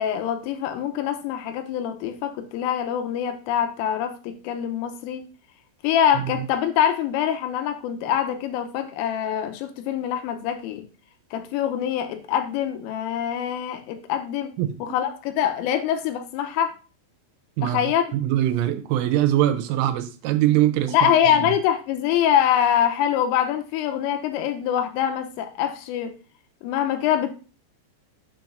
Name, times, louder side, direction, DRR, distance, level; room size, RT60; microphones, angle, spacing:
voice 1, 0.0-5.2 5.8-10.8 11.3-14.5 14.8-16.7 17.6-18.1 20.9-26.1 26.6-27.3, left 9 dB, 85° left, 3.4 m, -24 dB
voice 2, 14.6-14.9 17.6-17.8 18.2-21.5, right 13 dB, 85° right, 3.3 m, -23 dB
7.5 x 5.9 x 2.5 m
omnidirectional pair, 5.7 m